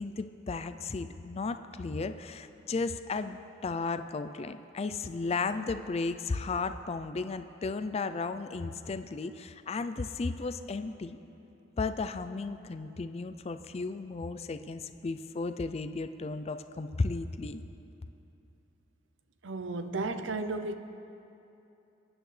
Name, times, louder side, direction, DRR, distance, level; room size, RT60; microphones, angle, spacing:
voice 1, 0.0-11.2 11.8-17.6, left 3 dB, 35° left, 10 dB, 0.4 m, -34 dB
voice 2, 19.4-20.8, right 3 dB, 85° right, 9 dB, 0.7 m, -33 dB
25.5 x 9.1 x 3.3 m, 2.9 s
head